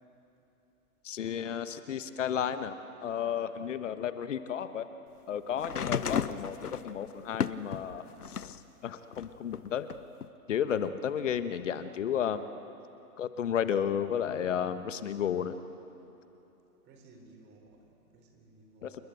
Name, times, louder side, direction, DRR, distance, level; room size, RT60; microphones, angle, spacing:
voice 1, 1.0-2.7 3.0-4.9 5.3-6.6 6.8-8.0 8.4-8.6 8.8-9.9 10.5-12.4 13.2-15.5 18.8-19.0, left 8 dB, 55° left, 11 dB, 1.3 m, -32 dB
sound 1, 5.6-8.6 9.1-10.3 11.3-11.4, left 7 dB, 80° left, 0.9 m, -34 dB
voice 2, 16.8-19.0, right 2 dB, 25° right, 3 dB, 4.6 m, -57 dB
29.0 x 21.0 x 8.2 m, 2.9 s
figure-of-eight pair, 120°, 45 cm